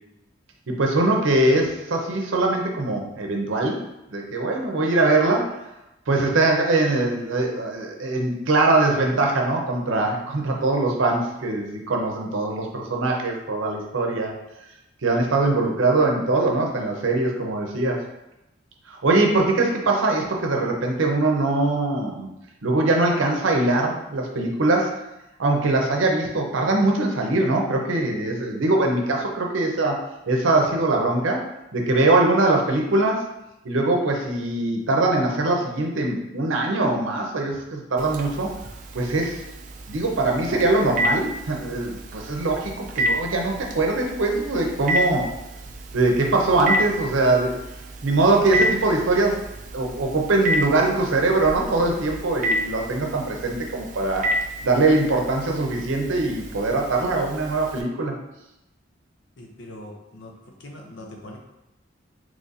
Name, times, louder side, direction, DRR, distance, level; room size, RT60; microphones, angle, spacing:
voice 1, 0.7-3.8 4.1-5.5 6.1-14.3 15.0-18.0 18.9-22.3 22.6-24.9 25.4-30.0 30.3-31.4 31.7-33.2 33.6-38.5 38.9-39.4 39.9-45.3 45.9-47.6 48.0-49.4 49.7-54.2 54.6-58.2, right 2 dB, 85° right, 1 dB, 0.7 m, -22 dB
Telephone, 38.0-57.8, equal, 40° right, 0.3 m, -30 dB
voice 2, 59.4-61.4, left 1 dB, 70° left, 1 dB, 0.6 m, -41 dB
3.1 x 2.5 x 4.0 m, 0.91 s
head